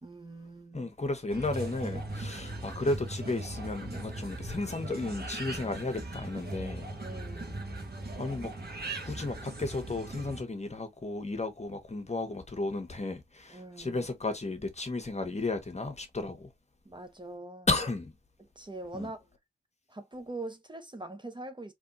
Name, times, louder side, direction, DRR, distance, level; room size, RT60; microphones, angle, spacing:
voice 1, 0.0-0.9 7.0-7.7 13.5-14.1 16.8-17.7 18.4-19.2 19.9-21.7, right 2 dB, 20° right, 0.9 m, -43 dB
voice 2, 0.7-6.9 8.2-8.5 9.0-16.5 17.7-18.1 18.9-19.1, left 2 dB, 30° left, 1.3 m, -33 dB
sound 1, 1.3-10.4, right 2 dB, 50° right, 1.5 m, -39 dB
3.5 x 3.2 x 2.7 m
cardioid pair, 45°, 21 cm